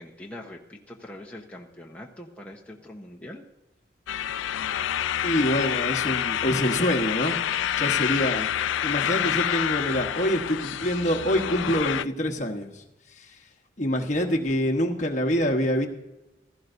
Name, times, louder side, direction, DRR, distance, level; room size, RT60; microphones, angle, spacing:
voice 1, 0.0-3.4 14.2-14.3, left 1 dB, 5° left, -2 dB, 0.9 m, -43 dB
sound 1, 4.1-12.0, left 10 dB, 85° left, 0.4 m, -27 dB
voice 2, 5.2-7.4 7.8-8.5 8.8-12.8 13.2-13.3 13.8-15.9, equal, 40° left, 3 dB, 1.2 m, -25 dB
16.5 x 14.0 x 2.6 m, 0.97 s
head